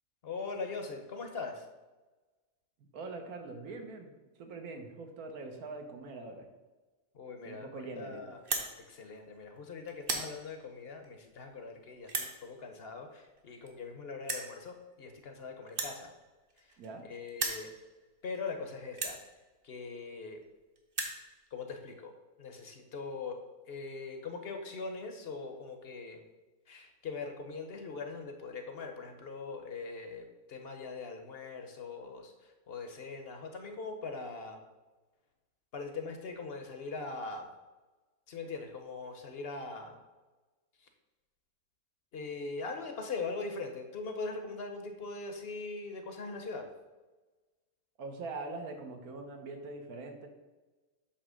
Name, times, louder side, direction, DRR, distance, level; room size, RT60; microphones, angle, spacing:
voice 1, 0.2-1.7 7.1-8.4 8.8-16.1 16.6-17.7 18.2-19.2 19.6-20.4 21.5-22.1 22.4-23.4 23.7-26.2 26.7-34.6 35.7-37.5 38.3-40.0 40.8-40.9 42.1-46.7, left 4 dB, 50° left, 5 dB, 0.9 m, -41 dB
voice 2, 2.9-4.1 4.4-6.5 7.4-8.3 16.8-17.0 48.0-50.3, right 3 dB, 70° right, 4 dB, 1.4 m, -43 dB
sound 1, 8.4-8.7 9.4-9.6 9.9-10.3 11.0-11.1 12.0-12.3 13.4-13.5 13.7-13.8 14.2-14.5 15.7-17.0 17.3-17.6 18.3-18.4 18.9-19.2 20.1-20.2 20.4-20.5 20.8-21.2, right 3 dB, 40° right, 1.0 m, -35 dB
8.5 x 3.0 x 6.2 m, 1.2 s
omnidirectional pair, 1.6 m